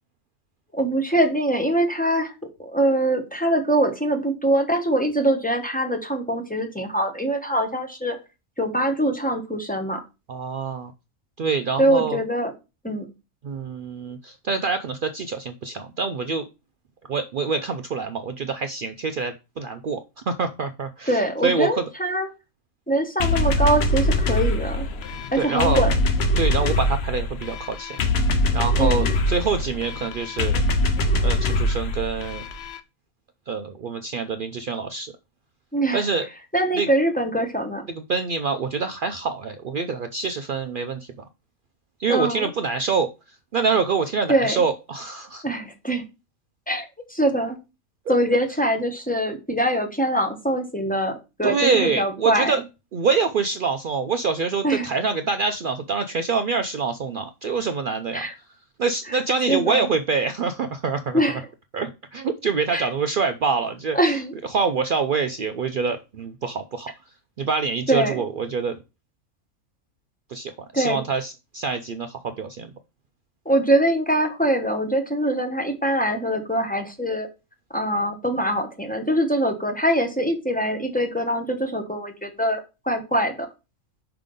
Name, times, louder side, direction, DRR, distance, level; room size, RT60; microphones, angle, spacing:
voice 1, 0.7-2.3 2.6-8.2 8.6-10.0 11.8-12.5 12.8-13.0 21.1-22.3 22.9-24.9 25.3-25.9 28.8-29.1 35.7-36.0 36.5-37.8 42.1-42.5 44.3-44.6 45.4-46.0 46.7-47.6 48.1-51.1 51.4-52.6 54.6-54.9 58.1-58.3 59.1-59.2 59.5-59.9 61.1-61.4 62.7-62.9 63.9-64.3 67.9-68.2 70.7-71.0 73.4-77.3 77.7-82.6 82.8-83.5, right 1 dB, 5° left, 4 dB, 1.0 m, -23 dB
voice 2, 10.3-10.9 11.4-12.2 13.4-16.4 17.1-21.9 25.3-25.9 26.4-28.0 28.5-30.6 31.2-32.4 33.5-35.1 35.9-36.3 36.7-36.9 37.9-41.1 42.0-43.1 43.5-45.4 48.1-48.2 51.4-52.6 52.9-58.3 58.8-61.2 61.7-64.0 64.5-66.9 67.4-68.8 70.3-72.7, right 5 dB, 75° right, 8 dB, 0.4 m, -25 dB
sound 1, 23.2-32.8, left 1 dB, 55° left, 0.8 m, -23 dB
5.7 x 3.7 x 5.1 m, 0.27 s
omnidirectional pair, 1.5 m